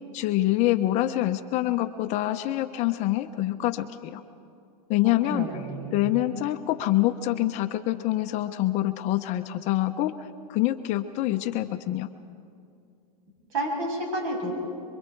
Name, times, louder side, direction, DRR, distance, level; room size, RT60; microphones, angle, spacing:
voice 1, 0.1-4.2 4.9-5.5 5.9-12.1, left 15 dB, 35° left, 9 dB, 0.8 m, -26 dB
voice 2, 5.3-6.1 13.5-14.5, right 1 dB, 55° right, 0 dB, 7.7 m, -30 dB
27.0 x 23.5 x 4.6 m, 2.4 s
supercardioid pair, 140°, 21 cm